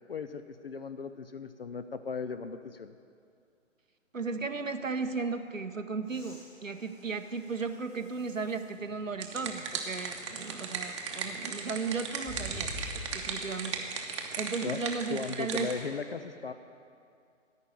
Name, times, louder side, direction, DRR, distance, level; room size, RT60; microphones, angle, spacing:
voice 1, 0.1-2.9 14.6-14.8 15.1-16.5, left 5 dB, 50° left, 10 dB, 0.5 m, -37 dB
voice 2, 4.1-13.9 14.3-15.7, right 4 dB, 85° right, 7 dB, 1.0 m, -35 dB
sound 1, 6.0-8.8 9.4-9.5 12.2-13.5 15.3-15.4, left 1 dB, 5° left, 1.3 m, -46 dB
sound 2, 8.9-15.8, right 6 dB, 25° right, 0.9 m, -37 dB
13.5 x 5.6 x 9.1 m, 2.4 s
figure-of-eight pair, 140°, 38 cm